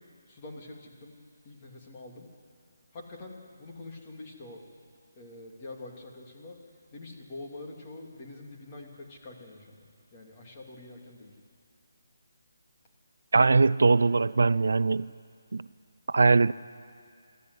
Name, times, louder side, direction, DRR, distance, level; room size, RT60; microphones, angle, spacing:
voice 1, 0.3-1.2 1.4-2.3 2.9-4.6 5.2-6.6 6.9-9.9 10.1-11.3, left 2 dB, 25° left, -1 dB, 2.9 m, -45 dB
voice 2, 13.3-15.1 15.5-15.7 16.1-16.5, right 3 dB, 75° right, 18 dB, 0.5 m, -21 dB
25.0 x 14.0 x 9.8 m, 2.3 s
hypercardioid pair, 165°, 0 cm